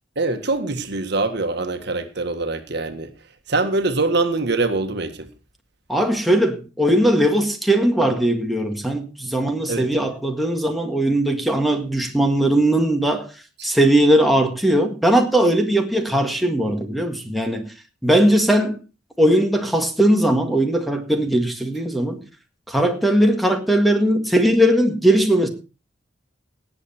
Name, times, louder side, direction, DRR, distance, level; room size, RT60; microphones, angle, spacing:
voice 1, 0.1-3.1 3.5-5.3 9.7-10.0 13.6-13.7, right 3 dB, 60° right, 1.6 m, -24 dB
voice 2, 5.9-13.3 13.6-17.7 18.0-18.8 19.2-22.2 22.7-25.5, right 1 dB, ahead, 1.8 m, -19 dB
18.0 x 7.9 x 4.4 m
head